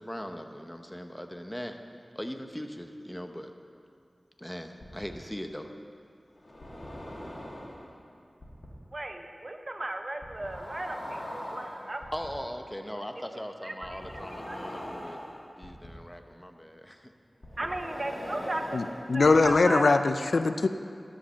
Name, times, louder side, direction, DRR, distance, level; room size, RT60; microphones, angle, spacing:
voice 1, 0.0-1.8 2.1-3.5 4.4-5.7 12.1-15.2 15.6-17.1, equal, 10° left, 5 dB, 0.8 m, -39 dB
sound 1, 4.8-5.1 6.4-7.9 8.4-8.7 10.2-12.3 13.8-15.9 17.4-19.5, left 1 dB, 60° left, 2.2 m, -41 dB
voice 2, 8.9-12.1 12.9-14.0 14.5-14.7 17.6-20.0, right 1 dB, 45° right, 5 dB, 0.8 m, -36 dB
voice 3, 18.7-20.7, left 3 dB, 85° left, 9 dB, 0.4 m, -22 dB
11.5 x 5.2 x 6.8 m, 2.3 s
wide cardioid pair, 50°, 0 cm